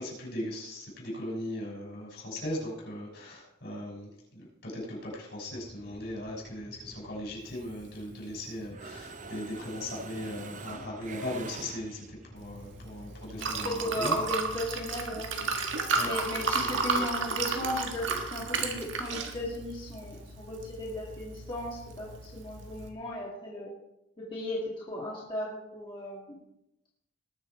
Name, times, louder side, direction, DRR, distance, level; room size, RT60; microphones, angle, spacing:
voice 1, 0.0-14.1 15.9-16.1 16.6-16.7, left 1 dB, 60° left, -3 dB, 6.0 m, -38 dB
sound 1, 5.5-14.7, equal, 5° left, 1.6 m, -53 dB
Mechanisms, 7.5-8.4 8.7-12.3, right 4 dB, 40° right, 0.6 m, -45 dB
Liquid, 12.4-22.9, right 4 dB, 75° right, 1.6 m, -33 dB
voice 2, 13.4-15.3 16.0-23.7 24.2-26.4, left 1 dB, 25° left, -6 dB, 2.3 m, -36 dB
20.0 x 6.8 x 4.6 m, 0.88 s
head